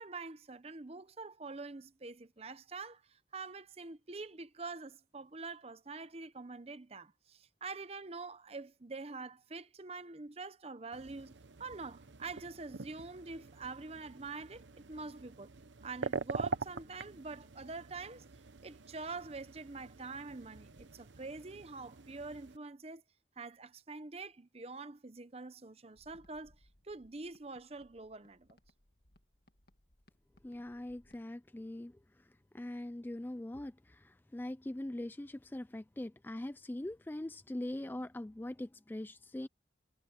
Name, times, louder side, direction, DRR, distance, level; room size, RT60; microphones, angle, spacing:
voice 1, 0.0-15.5 15.8-18.3 18.6-23.0 23.4-26.5 26.8-28.6, right 3 dB, 35° right, 0.8 m, -45 dB
sound 1, 10.9-22.6, right 4 dB, 90° right, 0.9 m, -45 dB
sound 2, 25.9-31.2, left 1 dB, 55° left, 2.0 m, -68 dB
voice 2, 30.4-39.5, left 1 dB, 10° left, 0.3 m, -42 dB
head